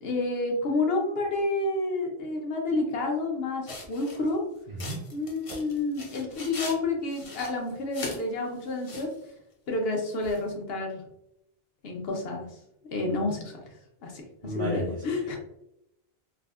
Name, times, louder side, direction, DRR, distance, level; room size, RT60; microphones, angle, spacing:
voice 1, 0.0-4.4 5.1-9.1 9.7-11.0 11.8-12.5 12.9-13.6 14.0-14.2 14.5-15.4, left 2 dB, 70° left, 1 dB, 0.9 m, -29 dB
sound 1, 3.7-4.3 4.8-6.8 7.1-8.2 8.6-9.1 10.2-10.4, left 2 dB, 40° left, 0.6 m, -39 dB
voice 2, 4.7-5.0 14.4-15.0, right 1 dB, 45° right, -5 dB, 0.5 m, -33 dB
3.4 x 2.1 x 2.3 m, 0.80 s
omnidirectional pair, 1.0 m